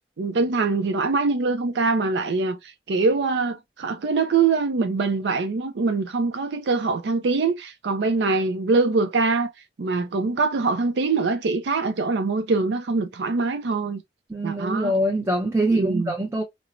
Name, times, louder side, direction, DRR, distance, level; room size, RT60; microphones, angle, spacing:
voice 1, 0.2-9.5 9.8-14.0 14.4-14.9 15.7-16.1, right 4 dB, 80° right, 0.4 m, -23 dB
voice 2, 14.3-16.4, right 1 dB, 15° right, 0.5 m, -23 dB
4.3 x 2.0 x 2.5 m
head